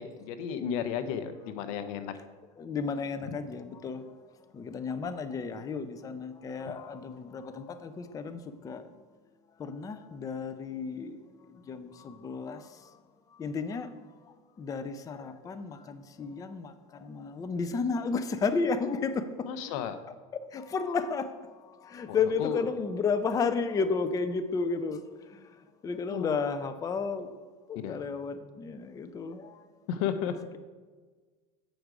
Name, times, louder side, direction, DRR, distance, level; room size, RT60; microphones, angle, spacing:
voice 1, 0.0-2.1 3.2-3.4 19.5-20.0 22.1-22.6 26.1-26.4 27.7-28.0 29.9-30.4, left 8 dB, 75° left, 11 dB, 0.7 m, -33 dB
voice 2, 2.6-4.0 4.5-8.8 9.6-11.2 11.7-12.8 13.4-13.9 14.3-19.5 20.3-21.3 21.5-25.0 25.3-25.5 25.8-27.3 27.7-29.6, left 5 dB, 20° left, 10 dB, 0.4 m, -32 dB
7.7 x 5.0 x 4.7 m, 1.4 s
supercardioid pair, 120°, 18 cm